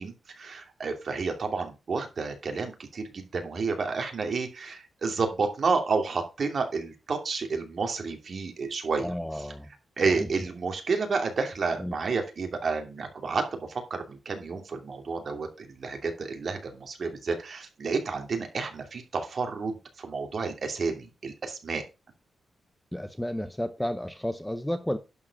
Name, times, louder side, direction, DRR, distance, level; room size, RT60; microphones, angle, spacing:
voice 1, 0.0-9.1 10.0-21.8, right 4 dB, 40° right, 2.3 m, -30 dB
voice 2, 9.0-9.7 10.1-10.3 11.8-11.9 22.9-25.0, left 1 dB, 5° left, 0.6 m, -32 dB
11.0 x 4.8 x 6.2 m
wide cardioid pair, 175°, 0 cm